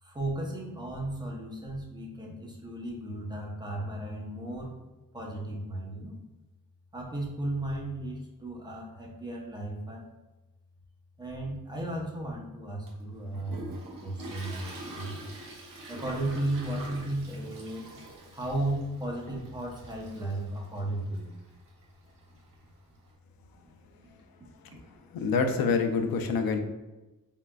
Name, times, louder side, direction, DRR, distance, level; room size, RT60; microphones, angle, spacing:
voice 1, 0.0-4.7 5.1-6.2 6.9-10.0 11.2-15.2 15.9-17.9 18.3-21.3, right 1 dB, 10° right, -2 dB, 0.7 m, -35 dB
Toilet flush, 12.9-23.1, right 2 dB, 75° right, 1.1 m, -46 dB
voice 2, 25.1-26.6, left 5 dB, 85° left, 6 dB, 0.6 m, -26 dB
4.1 x 3.7 x 2.3 m, 1.1 s
wide cardioid pair, 155°, 35 cm